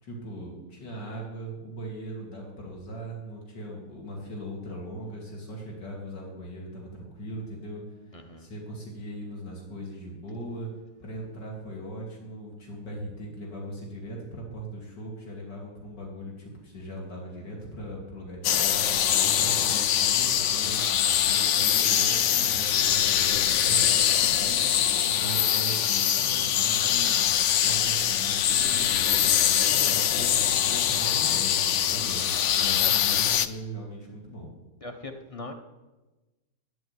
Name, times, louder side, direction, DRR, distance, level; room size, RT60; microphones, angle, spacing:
voice 1, 0.0-7.8 8.4-10.7 11.0-18.9 19.2-27.3 27.6-29.3 29.7-32.3 32.6-34.5, right 1 dB, 85° left, -1 dB, 3.5 m, -39 dB
voice 2, 8.1-8.5 19.3-19.7 32.8-32.9 34.8-35.5, left 2 dB, 25° left, 5 dB, 0.8 m, -41 dB
sound 1, 18.4-33.5, left 10 dB, 65° left, 0.7 m, -23 dB
10.5 x 9.2 x 9.7 m, 1.1 s
omnidirectional pair, 1.8 m